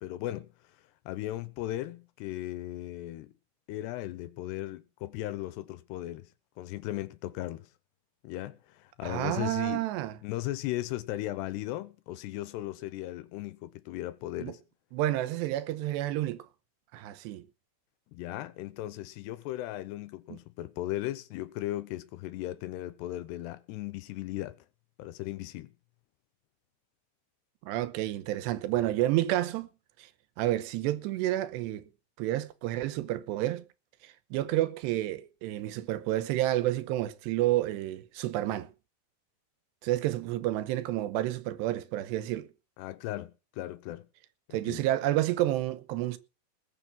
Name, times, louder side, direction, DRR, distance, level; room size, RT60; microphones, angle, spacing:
voice 1, 0.0-0.5 1.1-3.3 3.7-6.3 6.6-7.7 8.2-9.8 10.2-14.6 18.1-24.6 25.0-25.7 42.8-44.1 44.5-44.8, left 15 dB, 80° left, 2.8 m, -37 dB
voice 2, 9.0-10.2 14.4-14.5 14.9-16.5 16.9-17.4 20.3-20.4 27.6-29.7 30.0-30.1 30.4-31.9 32.2-33.6 34.0-38.7 39.8-42.5 44.5-46.2, right 14 dB, 80° right, 3.0 m, -30 dB
20.0 x 6.8 x 5.9 m
omnidirectional pair, 5.0 m